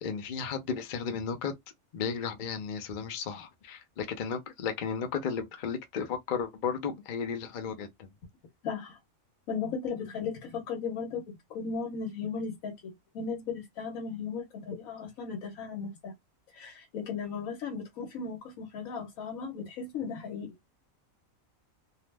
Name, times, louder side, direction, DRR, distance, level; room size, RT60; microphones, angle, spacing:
voice 1, 0.0-1.5 1.9-8.1, left 6 dB, 55° left, 0.5 m, -34 dB
voice 2, 8.6-9.0 9.5-16.1 16.5-20.5, left 5 dB, 85° left, 1.2 m, -36 dB
2.7 x 2.0 x 3.2 m
omnidirectional pair, 1.4 m